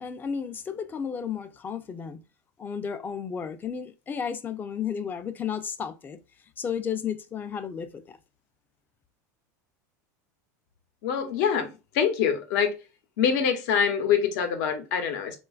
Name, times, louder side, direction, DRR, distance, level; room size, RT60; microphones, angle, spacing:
voice 1, 0.0-2.2 2.6-6.2 6.6-8.2, left 7 dB, 20° left, 0.3 m, -33 dB
voice 2, 11.0-11.7 11.9-12.7 13.2-15.4, left 7 dB, 65° left, 0.7 m, -25 dB
3.1 x 2.2 x 2.3 m
supercardioid pair, 125°, 9 cm